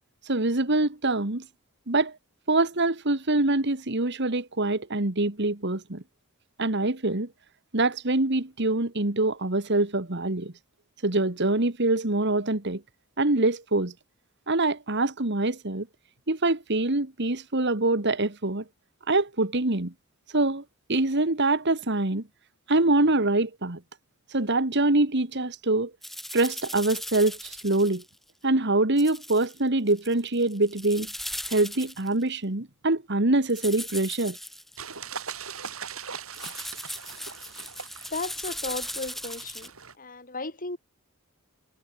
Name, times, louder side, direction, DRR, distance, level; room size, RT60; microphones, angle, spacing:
voice 1, 0.3-1.4 1.9-2.1 2.5-6.0 6.6-7.3 7.7-10.5 11.0-12.8 13.2-13.9 14.5-15.9 16.3-18.6 19.1-19.9 20.3-20.6 20.9-22.2 22.7-23.8 24.3-25.9 26.3-28.0 28.4-31.1 31.5-34.4, right 2 dB, 55° right, 1.9 m, -24 dB
sound 1, 26.0-28.1 29.0-29.6 29.9-32.2 33.5-34.8 36.3-39.7, equal, ahead, 4.0 m, -38 dB
sound 2, 34.8-39.9, right 6 dB, 75° right, 6.4 m, -40 dB
voice 2, 38.1-39.7 40.0-40.8, left 3 dB, 40° left, 5.1 m, -35 dB
head